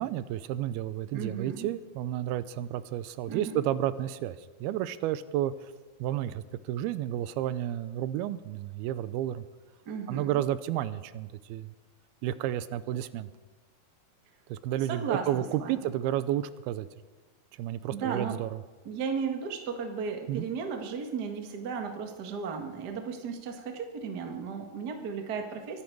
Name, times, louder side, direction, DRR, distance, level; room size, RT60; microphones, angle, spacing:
voice 1, 0.0-5.5 6.0-9.4 10.1-11.7 12.2-13.3 14.5-16.9 17.6-18.6 20.3-20.5, right 12 dB, 85° right, 15 dB, 2.5 m, -31 dB
voice 2, 1.1-1.7 3.3-3.6 9.8-10.4 14.9-15.9 17.9-18.4 18.8-25.8, right 6 dB, 50° right, 4 dB, 1.1 m, -35 dB
23.5 x 11.5 x 4.7 m, 1.2 s
omnidirectional pair, 4.5 m